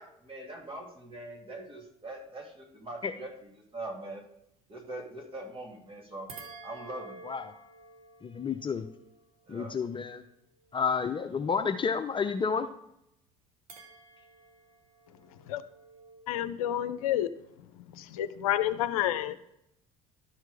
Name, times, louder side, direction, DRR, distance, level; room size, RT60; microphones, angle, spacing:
voice 1, 0.0-4.2 4.7-6.3 6.6-7.2 9.5-9.8, right 2 dB, 30° right, 1 dB, 2.4 m, -42 dB
sound 1, 6.3-10.8 13.7-16.2, right 3 dB, 90° right, 1.1 m, -51 dB
voice 2, 8.2-8.8 9.5-10.2 10.7-12.7, left 5 dB, 25° left, 8 dB, 0.6 m, -30 dB
voice 3, 16.3-17.3 17.9-19.4, left 12 dB, 80° left, 12 dB, 0.5 m, -29 dB
11.5 x 4.6 x 4.8 m, 0.78 s
hypercardioid pair, 65°, 18 cm